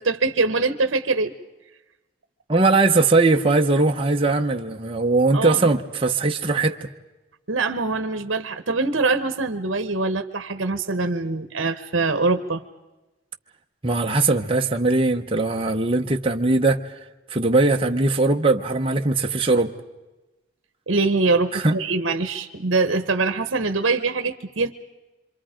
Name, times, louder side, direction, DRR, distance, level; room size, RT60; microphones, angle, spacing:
voice 1, 0.0-1.3 5.3-5.8 7.5-12.6 20.9-24.7, right 3 dB, 70° right, 9 dB, 1.0 m, -23 dB
voice 2, 2.5-6.9 13.8-16.8 17.3-19.7 21.5-21.8, right 3 dB, 25° right, 2 dB, 0.9 m, -20 dB
26.5 x 26.0 x 5.1 m, 1.1 s
head